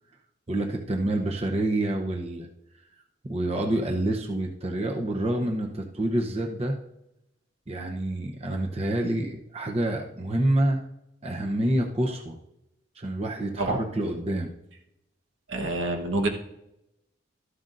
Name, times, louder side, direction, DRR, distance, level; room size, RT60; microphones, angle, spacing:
voice 1, 0.5-2.5 3.2-6.8 7.7-10.8 11.2-12.4 13.0-14.5, right 1 dB, 30° right, 1 dB, 0.8 m, -27 dB
voice 2, 15.5-16.3, right 2 dB, 85° right, 3 dB, 1.3 m, -27 dB
13.0 x 11.5 x 2.6 m, 0.86 s
head